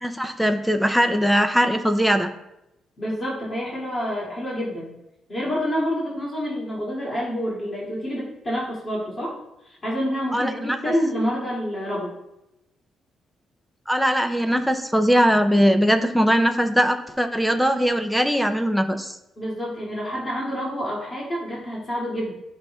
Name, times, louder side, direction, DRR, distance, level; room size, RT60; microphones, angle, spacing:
voice 1, 0.0-2.3 10.3-10.8 13.9-19.2, equal, ahead, 7 dB, 0.5 m, -20 dB
voice 2, 3.0-4.9 5.3-9.3 9.6-12.1 19.4-22.3, equal, 25° left, -7 dB, 2.3 m, -28 dB
11.5 x 5.5 x 2.3 m, 0.88 s
cardioid pair, 150°, 0 cm